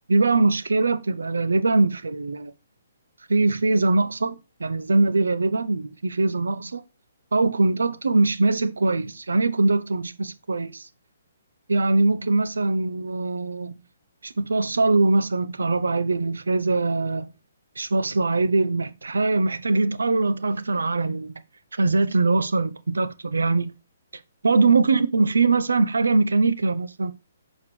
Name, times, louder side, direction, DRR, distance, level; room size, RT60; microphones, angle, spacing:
voice 1, 0.1-2.5 3.3-6.8 7.3-10.9 11.7-13.8 14.2-17.3 17.8-21.3 21.8-23.7 24.4-27.1, right 3 dB, 90° right, 0.8 m, -22 dB
7.3 x 5.2 x 3.2 m
hypercardioid pair, 145°, 0 cm